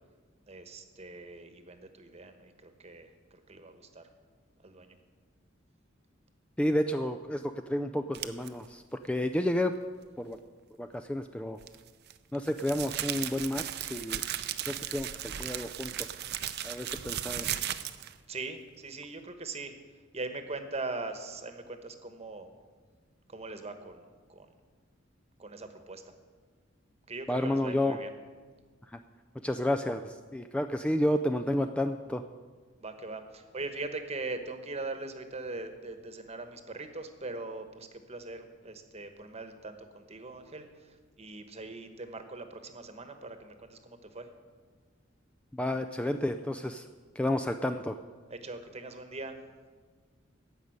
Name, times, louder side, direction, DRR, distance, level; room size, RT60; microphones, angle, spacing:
voice 1, 0.5-4.1 4.6-5.0 18.3-19.7 20.1-22.5 23.3-24.0 24.3-24.5 25.4-26.1 27.1-28.1 32.8-44.3 48.3-49.4, right 3 dB, 35° right, 8 dB, 1.2 m, -41 dB
voice 2, 6.6-9.7 10.2-10.4 10.8-11.6 12.3-14.2 14.7-16.1 16.6-17.5 27.3-28.0 28.9-29.0 29.4-32.2 45.5-46.9 47.2-48.0, left 1 dB, 5° left, 7 dB, 0.3 m, -31 dB
sound 1, 8.1-8.5 11.6-18.2, right 11 dB, 55° right, 0.6 m, -36 dB
15.0 x 5.4 x 9.4 m, 1.5 s
head